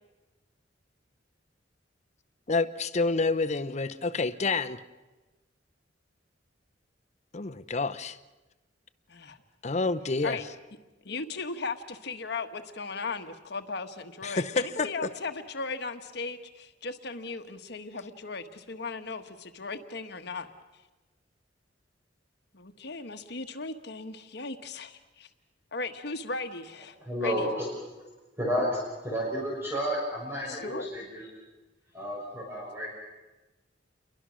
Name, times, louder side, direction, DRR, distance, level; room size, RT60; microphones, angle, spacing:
voice 1, 2.5-4.8 7.3-8.2 9.6-10.4 14.2-14.9, left 3 dB, 40° left, 11 dB, 0.7 m, -28 dB
voice 2, 11.0-20.5 22.5-25.3 25.7-26.9 27.2-27.5 30.5-30.9, left 4 dB, 65° left, 7 dB, 1.3 m, -37 dB
voice 3, 27.0-27.7 28.4-31.3 31.9-32.9, equal, 15° right, -3 dB, 6.0 m, -31 dB
29.5 x 23.0 x 6.3 m, 1.2 s
head